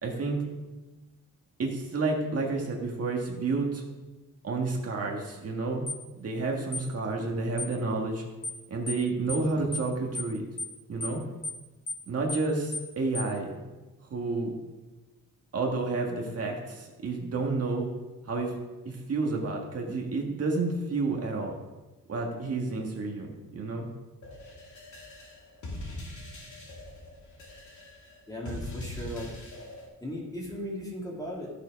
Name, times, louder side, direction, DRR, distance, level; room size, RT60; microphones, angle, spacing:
voice 1, 0.0-0.4 1.6-3.8 4.4-5.8 6.2-8.2 8.7-10.4 10.9-11.2 12.1-13.6 14.1-14.5 15.5-17.9 18.2-18.5 18.8-21.5 22.1-23.9, right 3 dB, 45° right, 0 dB, 1.6 m, -30 dB
sound 1, 5.9-6.0 6.7-6.9 7.6-7.7 8.4-8.6 8.9-9.0 9.3-9.5 9.7-9.9 10.1-10.3 10.6-10.7 11.0-11.2 11.4-11.6 11.9-12.0 12.3-12.5 12.7-12.9 13.1-13.3, left 1 dB, 30° left, 1.3 m, -34 dB
sound 2, 24.2-29.9, left 2 dB, 65° left, 2.7 m, -42 dB
voice 2, 28.3-29.3 30.0-31.5, equal, 10° left, -3 dB, 2.4 m, -37 dB
13.5 x 7.1 x 5.1 m, 1.2 s
wide cardioid pair, 175°, 32 cm